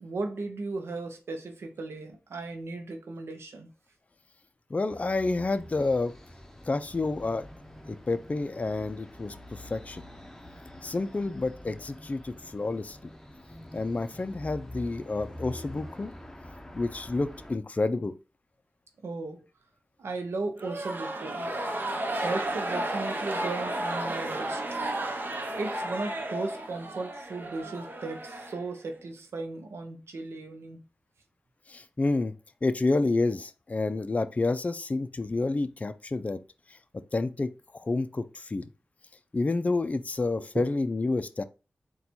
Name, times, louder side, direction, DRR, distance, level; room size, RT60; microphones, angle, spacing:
voice 1, 0.0-3.7 19.0-19.5 20.0-21.5 22.2-24.6 25.5-30.8 40.4-40.7, right 3 dB, 85° right, 0.6 m, -36 dB
voice 2, 4.7-6.1 6.7-7.5 7.9-10.0 10.8-13.0 13.7-16.1 16.7-18.1 31.7-32.3 32.6-36.4 37.1-38.6 39.3-41.4, left 3 dB, 35° left, 0.4 m, -29 dB
sound 1, 4.9-17.6, left 1 dB, 10° left, 0.7 m, -46 dB
sound 2, 20.6-29.0, right 1 dB, 50° right, 0.8 m, -33 dB
4.1 x 2.2 x 4.3 m
wide cardioid pair, 60°, 4 cm